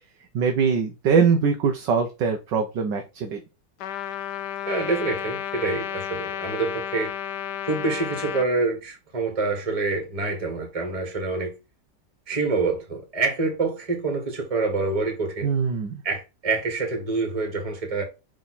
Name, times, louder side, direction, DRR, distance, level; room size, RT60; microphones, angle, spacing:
voice 1, 0.3-3.4 15.4-16.0, right 5 dB, 80° right, 1.6 m, -22 dB
Trumpet, 3.8-8.5, left 9 dB, 75° left, 1.1 m, -32 dB
voice 2, 4.7-7.1 7.6-11.6 12.3-15.5 16.0-18.0, right 3 dB, 20° right, 1.7 m, -26 dB
6.1 x 3.7 x 4.2 m
omnidirectional pair, 1.9 m